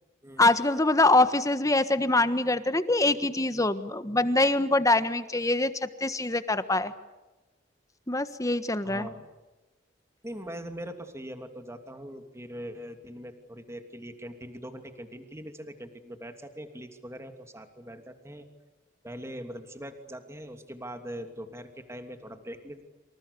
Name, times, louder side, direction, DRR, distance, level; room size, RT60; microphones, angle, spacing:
voice 1, 0.4-6.9 8.1-9.1, left 2 dB, 20° left, 11 dB, 1.4 m, -24 dB
voice 2, 8.8-9.3 10.2-18.5 19.0-22.8, equal, 15° right, 6 dB, 2.8 m, -41 dB
27.5 x 27.5 x 6.9 m, 1.1 s
head